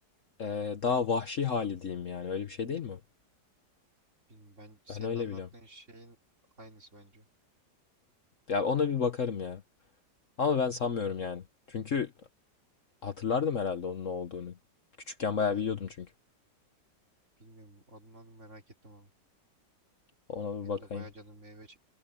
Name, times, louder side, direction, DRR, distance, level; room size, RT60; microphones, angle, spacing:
voice 1, 0.4-3.0 4.9-5.5 8.5-9.6 10.4-11.4 11.7-12.1 13.0-14.5 15.1-16.1 20.3-21.0, left 6 dB, 50° left, 1.3 m, -31 dB
voice 2, 4.3-6.2 6.6-7.3 15.4-15.7 17.4-19.1 20.6-21.8, right 1 dB, 40° right, 3.8 m, -52 dB
omnidirectional pair, 1.9 m